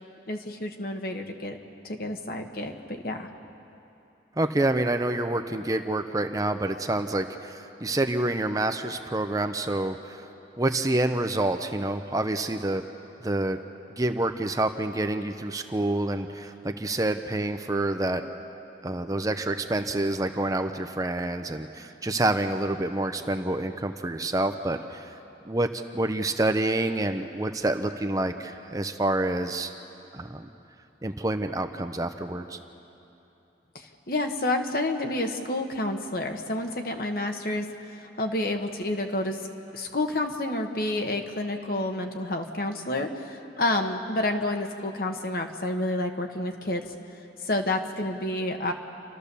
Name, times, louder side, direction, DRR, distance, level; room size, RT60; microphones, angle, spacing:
voice 1, 0.3-1.6 1.8-3.3 33.7-37.7 37.9-39.4 39.7-46.8 47.4-48.7, left 1 dB, 55° left, 4 dB, 1.3 m, -29 dB
voice 2, 4.4-10.3 10.6-12.8 13.2-13.6 14.0-18.2 18.8-25.1 25.5-29.7 30.1-30.5 31.0-32.6, right 2 dB, 20° right, 7 dB, 0.6 m, -27 dB
29.5 x 13.5 x 6.9 m, 2.9 s
head